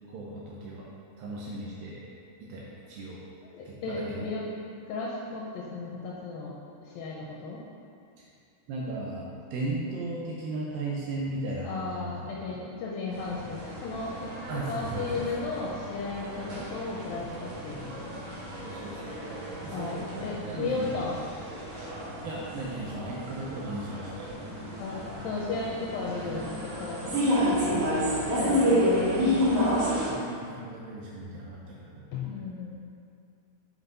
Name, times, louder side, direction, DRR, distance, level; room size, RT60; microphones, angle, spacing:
voice 1, 0.1-2.0 2.4-3.2 3.7-4.3 8.2-8.3 8.7-12.6 14.5-15.5 18.6-19.2 19.6-21.0 21.7-22.0 22.2-24.3 27.7-27.9 30.1-32.1, right 2 dB, 80° right, -4 dB, 2.2 m, -37 dB
voice 2, 3.5-4.4 4.9-7.6 11.6-14.3 14.7-18.2 19.7-21.2 24.8-27.2 28.2-29.1 32.1-32.8, left 3 dB, 80° left, -4 dB, 2.2 m, -35 dB
sound 1, 13.1-30.1, equal, 60° right, 2.4 m, -31 dB
7.6 x 5.5 x 4.0 m, 2.4 s
omnidirectional pair, 4.8 m